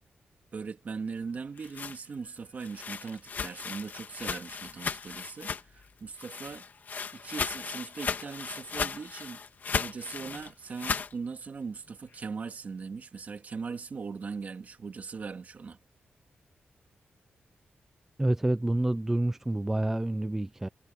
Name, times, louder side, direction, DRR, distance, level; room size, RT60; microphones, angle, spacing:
voice 1, 0.5-6.7 7.1-9.4 9.7-15.8, right 5 dB, 45° right, 2.4 m, -39 dB
sound 1, 1.4-5.9 6.2-11.1, left 5 dB, 50° left, 1.9 m, -36 dB
voice 2, 18.2-20.7, right 1 dB, 10° right, 0.4 m, -28 dB
wide cardioid pair, 150°, 4 cm